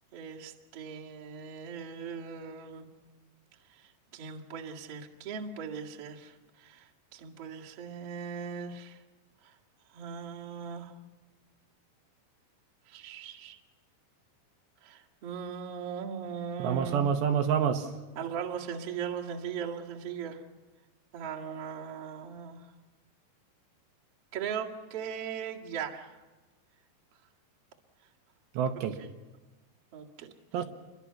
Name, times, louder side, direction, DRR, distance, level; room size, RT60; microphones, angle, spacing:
voice 1, 0.1-2.9 3.7-9.0 9.4-9.5 9.9-10.9 12.9-13.6 14.8-17.0 18.2-20.4 21.1-22.7 24.3-26.2 29.0-29.1 29.9-30.6, right 7 dB, 45° right, -2 dB, 2.2 m, -39 dB
voice 2, 16.6-17.9 28.5-29.0 30.5-30.6, right 7 dB, 75° right, 5 dB, 3.1 m, -27 dB
29.0 x 23.0 x 5.8 m, 1.2 s
omnidirectional pair, 5.4 m